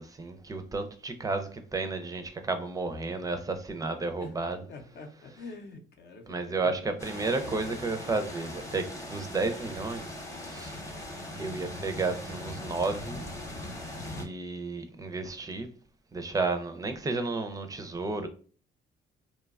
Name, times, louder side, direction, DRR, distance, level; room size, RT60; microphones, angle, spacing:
voice 1, 0.0-4.6 6.3-10.8 11.4-13.2 14.1-15.7 16.1-18.3, right 3 dB, 20° right, 0.4 m, -32 dB
voice 2, 4.7-7.0, left 3 dB, 55° left, 0.6 m, -46 dB
sound 1, 7.0-14.3, left 1 dB, 15° left, 0.7 m, -40 dB
2.9 x 2.2 x 2.3 m
cardioid pair, 90°, 20 cm